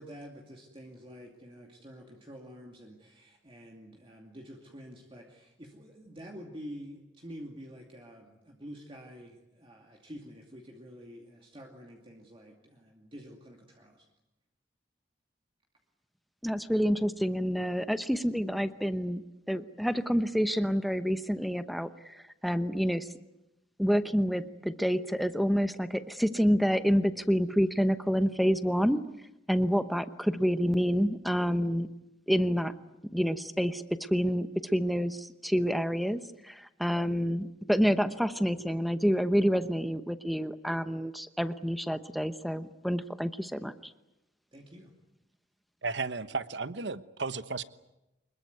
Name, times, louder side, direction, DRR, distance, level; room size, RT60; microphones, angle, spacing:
voice 1, 0.0-14.1 44.5-44.9, equal, 30° right, 2.5 m, -48 dB
voice 2, 16.4-23.1 23.8-29.0 29.5-31.9 32.3-32.7 33.1-43.9, equal, ahead, 0.9 m, -28 dB
voice 3, 45.8-47.6, right 4 dB, 65° right, 1.1 m, -34 dB
25.5 x 21.5 x 9.5 m
head